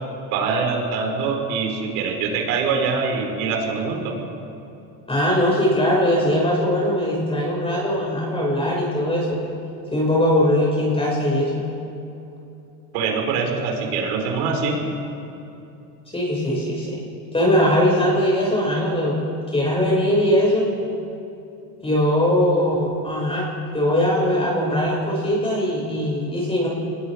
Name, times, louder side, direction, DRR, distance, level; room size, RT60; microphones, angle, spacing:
voice 1, 0.3-4.1 12.9-14.8, right 5 dB, 70° right, 1 dB, 5.8 m, -24 dB
voice 2, 5.1-9.4 9.9-11.7 16.1-17.0 17.3-20.7 21.8-23.5 23.7-26.7, left 1 dB, 10° left, -4 dB, 6.3 m, -20 dB
27.5 x 21.0 x 5.0 m, 2.9 s
supercardioid pair, 100°, 46 cm